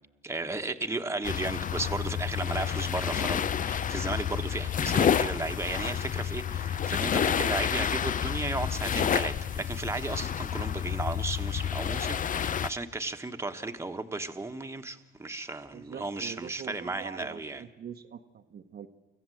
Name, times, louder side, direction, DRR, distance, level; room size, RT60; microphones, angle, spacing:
voice 1, 0.2-17.6, right 2 dB, 15° right, 6 dB, 1.3 m, -34 dB
sound 1, 1.2-12.7, left 8 dB, 40° left, 0.6 m, -29 dB
voice 2, 15.7-18.9, right 7 dB, 55° right, 6 dB, 1.0 m, -44 dB
25.0 x 15.0 x 7.8 m, 1.1 s
cardioid pair, 90°, 20 cm